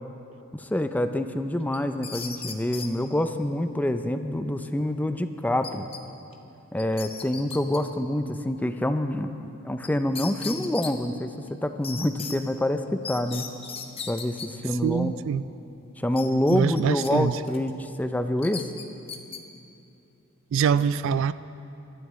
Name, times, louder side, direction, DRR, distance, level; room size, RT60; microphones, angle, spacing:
voice 1, 0.5-5.9 6.7-13.5 14.1-15.2 16.0-18.6, left 1 dB, 10° left, 0.4 m, -27 dB
sound 1, 1.7-2.9 5.6-6.0 6.3-6.4 6.8-7.8 9.8-9.9 10.2-10.9 11.8-12.4 13.0-14.5 16.2-17.1 17.5-17.7 18.4-19.4, left 6 dB, 30° left, 0.9 m, -37 dB
voice 2, 14.6-15.4 16.5-17.4 20.5-21.3, right 7 dB, 65° right, 0.3 m, -24 dB
24.5 x 12.5 x 3.2 m
head